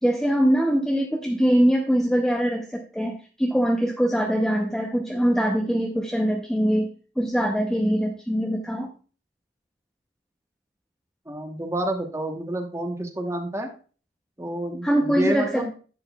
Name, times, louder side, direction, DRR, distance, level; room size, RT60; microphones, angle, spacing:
voice 1, 0.0-8.9 14.8-15.7, equal, 5° left, 1 dB, 0.6 m, -23 dB
voice 2, 11.3-13.7 14.4-15.7, right 1 dB, 15° right, 4 dB, 1.0 m, -29 dB
10.5 x 7.8 x 2.3 m, 0.39 s
head